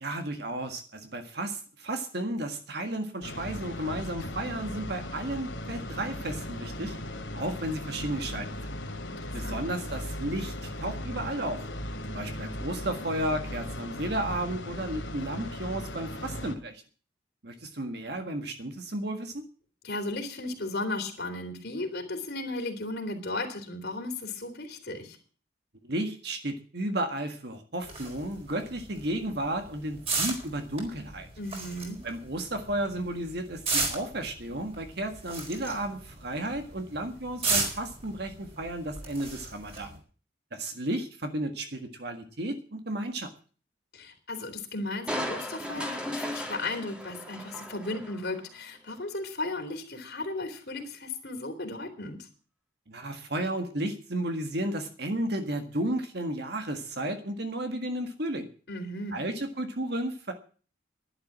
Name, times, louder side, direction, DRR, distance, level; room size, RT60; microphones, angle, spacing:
voice 1, 0.0-7.0 7.3-8.5 9.3-11.6 12.1-16.8 17.4-19.4 25.8-31.3 32.0-40.0 40.5-43.3 52.9-58.5 59.1-60.3, right 1 dB, 60° right, 6 dB, 1.7 m, -33 dB
sound 1, 3.2-16.5, left 1 dB, 80° left, 2.6 m, -37 dB
voice 2, 9.0-9.7 19.8-25.2 31.4-32.0 43.9-52.3 58.7-59.2, left 2 dB, 60° left, 5 dB, 3.2 m, -35 dB
sound 2, 27.8-40.0, right 3 dB, 30° right, 4.3 m, -35 dB
Crushing, 45.1-48.4 48.9-49.0, equal, 5° right, 2.0 m, -36 dB
11.5 x 11.0 x 7.4 m, 0.40 s
head